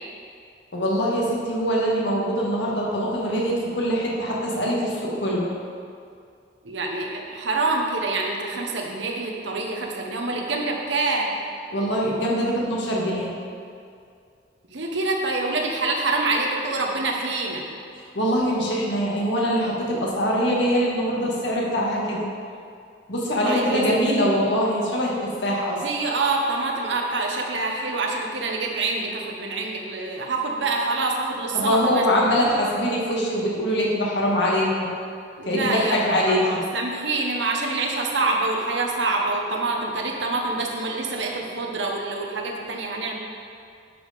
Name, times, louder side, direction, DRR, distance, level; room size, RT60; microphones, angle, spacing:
voice 1, 0.7-5.5 11.7-13.3 18.1-22.3 23.1-25.8 31.5-34.9 35.4-36.6, equal, 70° left, -4 dB, 1.9 m, -23 dB
voice 2, 6.6-11.3 14.7-17.6 23.4-23.8 25.8-32.0 35.4-43.2, right 3 dB, 80° right, 0 dB, 1.1 m, -26 dB
11.0 x 5.1 x 5.1 m, 2.3 s
head